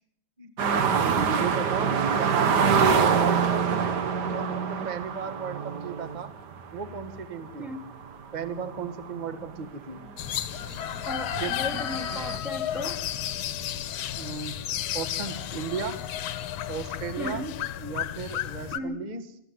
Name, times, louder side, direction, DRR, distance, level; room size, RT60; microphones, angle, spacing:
sound 1, 0.6-9.7 10.1-10.2 10.6-12.4, right 6 dB, 60° right, 1.1 m, -26 dB
voice 1, 1.0-2.6 3.1-6.3 6.7-7.7 8.3-10.0 11.4-11.5 14.1-14.5 14.9-16.0 16.7-17.5 17.8-19.3, right 6 dB, 25° right, 10 dB, 0.9 m, -35 dB
sound 2, 10.2-18.8, left 11 dB, 65° left, 1.9 m, -32 dB
voice 2, 11.1-13.0 17.2-17.5 18.7-19.0, equal, ahead, 7 dB, 1.9 m, -35 dB
23.0 x 14.5 x 9.6 m, 0.78 s
omnidirectional pair, 3.3 m